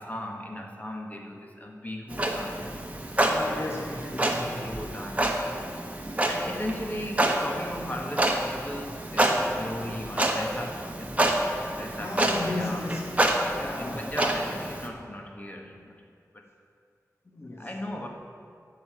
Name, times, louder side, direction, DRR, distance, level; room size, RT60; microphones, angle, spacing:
voice 1, 0.0-2.9 4.6-5.8 6.1-11.2 11.7-12.9 13.5-16.0 16.3-16.5 17.6-18.1, left 1 dB, 25° left, 2 dB, 1.6 m, -37 dB
Clock, 2.1-14.9, right 1 dB, 25° right, 1.3 m, -28 dB
voice 2, 3.2-4.7 12.0-13.1 13.6-14.1 17.2-17.7, left 2 dB, 45° left, -1 dB, 1.4 m, -35 dB
13.5 x 5.7 x 9.2 m, 2.4 s
wide cardioid pair, 75°, 6 cm